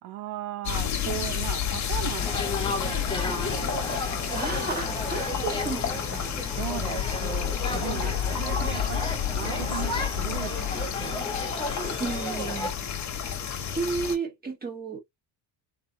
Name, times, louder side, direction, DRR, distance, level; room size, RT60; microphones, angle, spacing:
voice 1, 0.0-3.9 6.5-9.0 9.3-11.3, right 14 dB, 85° right, 1.1 m, -37 dB
sound 1, 0.6-14.2, left 9 dB, 35° left, 1.3 m, -30 dB
sound 2, 2.2-12.7, left 2 dB, 10° left, 1.2 m, -33 dB
voice 2, 4.3-6.4 12.0-13.1 13.7-15.0, right 4 dB, 20° right, 1.8 m, -33 dB
4.4 x 3.5 x 2.9 m
cardioid pair, 170°, 49 cm